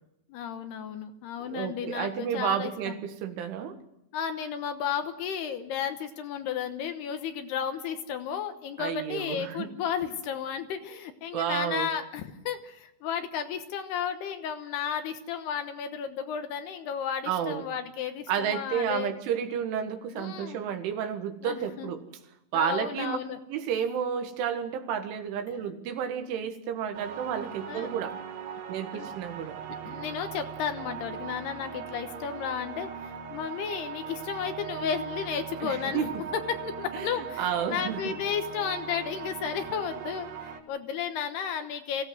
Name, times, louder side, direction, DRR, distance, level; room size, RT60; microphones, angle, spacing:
voice 1, 0.3-3.0 4.1-19.1 20.1-20.6 21.4-21.9 22.5-23.4 27.7-27.9 28.9-29.1 29.9-32.9 33.3-42.0, left 8 dB, 70° left, 8 dB, 2.9 m, -33 dB
voice 2, 1.4-3.8 8.8-9.7 11.3-11.9 17.3-17.7 18.3-22.0 22.5-23.2 23.5-28.2 28.7-29.6 35.6-36.1 36.9-38.0, right 8 dB, 85° right, 7 dB, 4.1 m, -31 dB
sound 1, 26.9-40.6, right 7 dB, 65° right, 3.6 m, -39 dB
24.0 x 16.5 x 7.8 m, 0.83 s
omnidirectional pair, 5.4 m